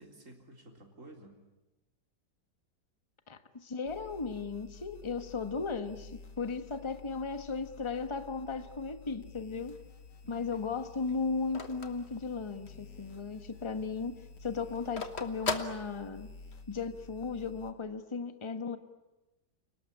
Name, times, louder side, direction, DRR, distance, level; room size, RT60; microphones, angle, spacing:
voice 1, 0.0-1.4 10.2-10.9, right 2 dB, 45° right, 3 dB, 4.2 m, -53 dB
voice 2, 3.3-9.8 10.3-16.3 16.7-18.8, left 4 dB, 20° left, 9 dB, 1.2 m, -36 dB
sound 1, 3.9-17.7, left 4 dB, 75° left, 2.5 m, -52 dB
Telephone, 9.5-12.9 13.3-13.4 13.7-16.5, left 3 dB, 40° left, 1.8 m, -39 dB
29.0 x 19.5 x 9.9 m, 1.0 s
omnidirectional pair, 1.9 m